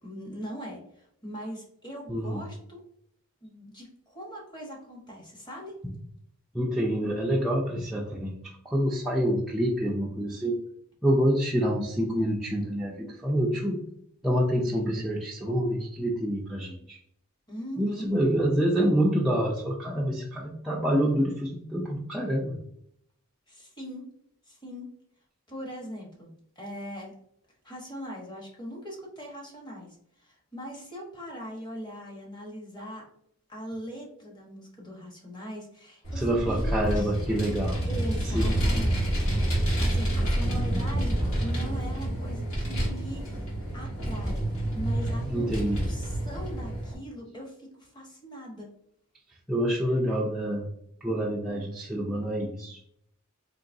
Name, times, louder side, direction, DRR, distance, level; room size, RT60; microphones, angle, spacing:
voice 1, 0.0-2.8 3.4-5.8 17.5-18.1 23.5-24.1 24.5-24.9 25.5-27.1 27.6-33.0 33.5-37.1 37.9-43.3 43.7-44.4 44.7-48.7, equal, 20° left, -2 dB, 1.0 m, -40 dB
voice 2, 2.1-2.5 6.5-10.6 11.0-13.8 14.2-17.0 17.8-22.6 36.1-37.8 38.2-38.6 45.2-45.9 49.5-50.7 51.0-52.8, equal, ahead, -5 dB, 0.3 m, -27 dB
Vehicle, 36.0-46.9, right 1 dB, 75° left, 1.4 m, -28 dB
3.8 x 2.9 x 2.6 m, 0.71 s
head